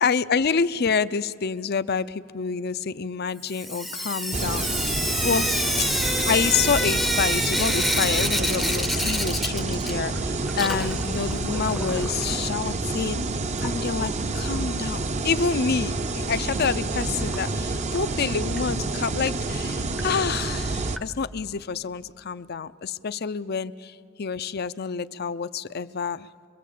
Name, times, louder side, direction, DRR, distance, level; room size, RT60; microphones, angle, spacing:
voice 1, 0.0-4.6 5.2-5.5 5.8-5.9 6.2-13.2 13.6-26.3, left 5 dB, 55° left, 14 dB, 0.6 m, -27 dB
Sink (filling or washing) / Drip, 3.5-10.2 10.5-12.4 13.6-13.7 14.0-14.1 14.3-14.4 17.3-17.4 17.9-18.0 18.6-18.7 19.3-19.4 20.0-20.1 21.0-21.1, equal, ahead, 0.7 m, -28 dB
sound 1, 4.3-21.0, right 3 dB, 35° right, 0.7 m, -28 dB
25.5 x 22.0 x 8.4 m, 2.1 s
head